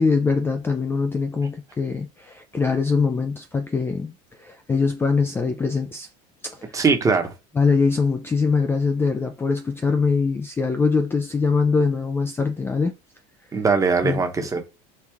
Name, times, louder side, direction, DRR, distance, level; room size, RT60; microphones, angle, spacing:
voice 1, 0.0-4.1 4.4-6.1 6.4-6.7 7.6-12.9 14.0-14.2, left 4 dB, 15° left, 0.4 m, -22 dB
voice 2, 6.7-7.3 13.5-14.6, right 4 dB, 20° right, 0.9 m, -20 dB
4.5 x 2.4 x 3.4 m
supercardioid pair, 125°, 17 cm